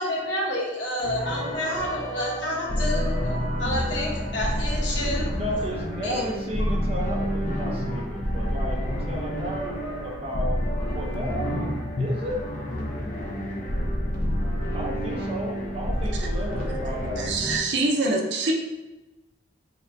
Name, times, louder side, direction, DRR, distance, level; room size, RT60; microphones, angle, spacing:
voice 1, 0.0-5.3 6.0-6.2 11.1-12.0, left 1 dB, 70° left, -3 dB, 1.0 m, -29 dB
sound 1, 1.0-17.6, equal, 45° left, 0.6 m, -29 dB
voice 2, 5.3-10.6 10.9-11.5 12.0-12.4 14.7-17.3 18.0-18.4, equal, 30° right, -2 dB, 0.7 m, -33 dB
voice 3, 17.2-18.5, right 2 dB, 65° right, 1 dB, 0.6 m, -25 dB
6.6 x 2.2 x 2.6 m, 1.1 s
head